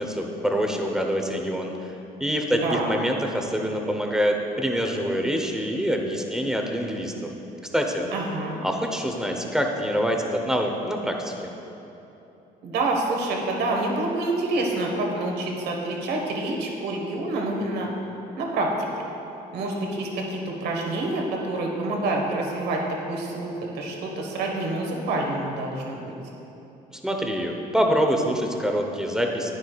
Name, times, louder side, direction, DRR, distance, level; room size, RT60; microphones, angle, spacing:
voice 1, 0.0-1.9 2.2-7.3 7.7-8.1 8.6-11.5 26.9-29.5, equal, 5° right, 2 dB, 0.9 m, -25 dB
voice 2, 8.1-8.6 12.6-17.9 18.4-18.9 19.5-26.0, right 2 dB, 75° right, 0 dB, 1.5 m, -27 dB
10.5 x 9.7 x 2.4 m, 3.0 s
cardioid pair, 110°, 17 cm